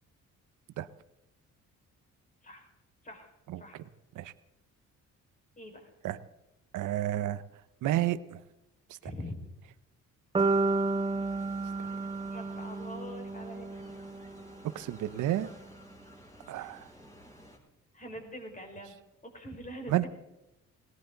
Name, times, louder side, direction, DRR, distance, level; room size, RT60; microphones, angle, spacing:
voice 1, 3.5-3.8 4.1-4.3 6.0-6.2 6.7-7.4 7.8-8.4 8.9-9.1 14.7-15.5 16.5-16.9 19.9-20.1, right 13 dB, 80° right, 14 dB, 0.9 m, -31 dB
voice 2, 5.6-5.9 9.0-9.4 12.3-13.7 16.6-16.8 17.9-18.9 19.3-20.1, equal, 25° left, 2 dB, 5.2 m, -44 dB
sound 1, 10.3-17.6, equal, 10° left, 6.4 m, -53 dB
sound 2, 10.4-14.5, right 3 dB, 20° right, 0.9 m, -31 dB
18.5 x 18.5 x 3.9 m, 0.92 s
cardioid pair, 90°, 30 cm